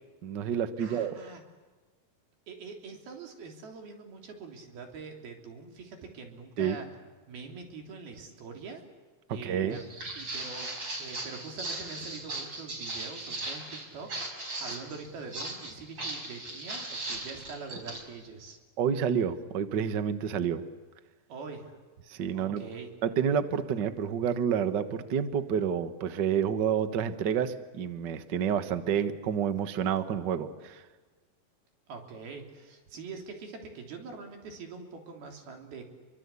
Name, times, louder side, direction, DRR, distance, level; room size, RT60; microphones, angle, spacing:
voice 1, 0.2-1.1 6.6-6.8 9.4-9.8 18.8-20.6 22.1-22.6 23.0-30.8, right 8 dB, 60° right, 10 dB, 1.1 m, -29 dB
voice 2, 0.8-1.5 2.5-6.9 7.3-8.8 9.3-9.8 10.2-18.6 21.3-21.8 22.3-22.9 31.9-35.8, right 4 dB, 85° right, 3 dB, 5.4 m, -44 dB
Walk footsteps, 9.7-18.0, right 2 dB, 30° right, 5.7 m, -38 dB
29.0 x 24.0 x 8.4 m, 1.3 s
omnidirectional pair, 4.3 m